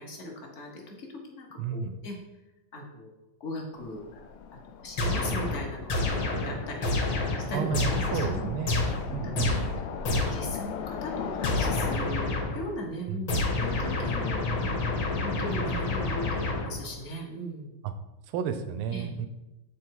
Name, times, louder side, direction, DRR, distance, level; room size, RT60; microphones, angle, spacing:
voice 1, 0.0-2.2 2.7-3.1 3.4-4.2 4.8-7.2 7.5-8.5 9.1-14.9 15.2-17.7 18.9-19.1, equal, 40° left, 1 dB, 1.3 m, -39 dB
voice 2, 1.6-2.0 7.5-8.8 9.1-9.6 13.1-13.2 18.3-19.3, right 7 dB, 80° right, 9 dB, 1.6 m, -32 dB
Train, 3.8-12.0, left 7 dB, 85° left, 1.6 m, -39 dB
sound 1, 5.0-10.6 11.4-12.7 13.3-17.0, left 2 dB, 65° left, 2.0 m, -29 dB
8.5 x 4.3 x 4.6 m, 0.97 s
omnidirectional pair, 2.4 m